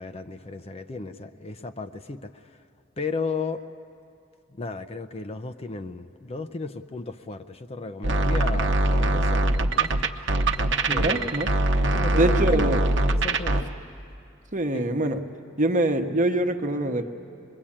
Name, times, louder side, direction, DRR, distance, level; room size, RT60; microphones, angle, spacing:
voice 1, 0.0-2.3 3.0-3.6 4.5-10.1 10.6-11.5 11.8-12.8 13.2-13.7 14.7-14.9, left 3 dB, 30° left, 9 dB, 0.6 m, -34 dB
sound 1, 8.0-13.6, right 2 dB, 65° right, 0.9 m, -22 dB
voice 2, 10.9-11.5 12.1-12.9 14.5-15.2 15.6-17.0, right 1 dB, 40° right, 5 dB, 1.1 m, -24 dB
25.0 x 21.5 x 8.7 m, 2.6 s
head